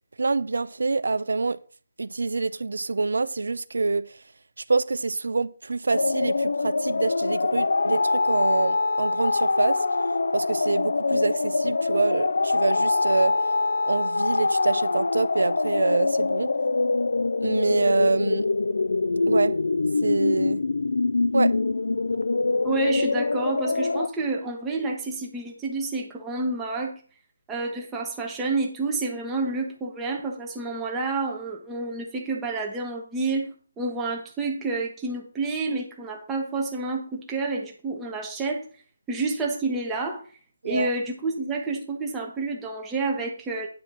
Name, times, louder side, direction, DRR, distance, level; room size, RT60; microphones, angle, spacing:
voice 1, 0.2-1.6 2.0-4.1 4.7-9.8 10.3-13.4 13.9-16.5 17.4-18.5 19.3-19.6 20.0-20.6 21.3-21.5 40.6-40.9, right 3 dB, 70° right, 0.6 m, -26 dB
sound 1, 5.9-24.1, left 3 dB, 75° left, 0.4 m, -24 dB
voice 2, 22.6-26.9 27.5-33.5 33.8-38.7 39.1-40.2 40.6-43.7, right 3 dB, 5° right, 0.9 m, -29 dB
9.7 x 4.3 x 6.0 m
hypercardioid pair, 175°, 0 cm